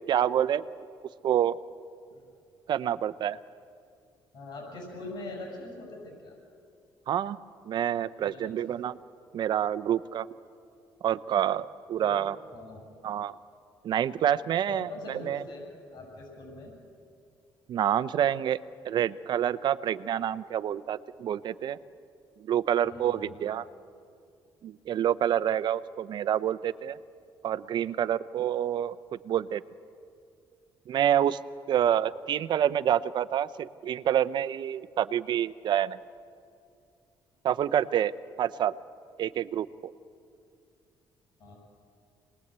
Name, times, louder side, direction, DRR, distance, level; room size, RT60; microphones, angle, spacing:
voice 1, 0.1-0.6 1.2-1.6 2.7-3.4 7.1-7.4 7.6-9.0 9.3-10.3 11.0-12.4 13.0-13.3 13.8-15.4 17.7-18.6 18.8-21.8 22.4-23.7 24.6-27.0 27.4-29.0 29.2-29.6 30.9-31.4 31.7-36.0 37.4-38.1 38.4-38.8 39.2-39.9, right 10 dB, 55° right, 15 dB, 0.7 m, -27 dB
voice 2, 4.3-6.4 8.2-8.5 12.0-12.2 12.5-12.9 14.7-15.7 15.9-16.7 22.8-23.4 41.4-41.6, left 2 dB, 55° left, 0 dB, 7.6 m, -42 dB
26.5 x 20.0 x 8.2 m, 2.4 s
cardioid pair, 125°, 9 cm